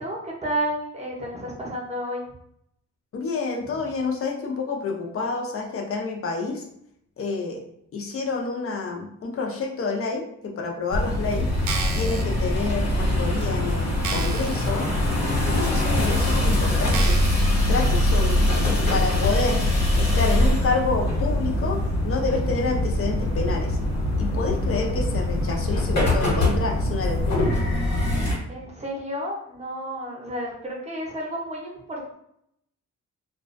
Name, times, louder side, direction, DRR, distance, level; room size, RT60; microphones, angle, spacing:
voice 1, 0.0-2.2 28.1-32.1, right 1 dB, 25° right, -2 dB, 0.7 m, -31 dB
voice 2, 3.1-6.7 7.2-7.6 7.9-11.5 11.9-14.9 15.4-17.3 17.7-18.6 18.9-23.8 24.2-27.5, left 4 dB, 50° left, 1 dB, 0.5 m, -28 dB
sound 1, 10.9-28.3, left 1 dB, 70° left, 1.2 m, -23 dB
sound 2, 11.5-12.2 12.9-13.0 13.5-13.6 14.0-14.7 15.2-15.3 16.0-16.1 16.9-17.6 18.1-18.2, right 5 dB, 75° right, 0.5 m, -32 dB
2.3 x 2.2 x 2.5 m, 0.73 s
cardioid pair, 115°, 29 cm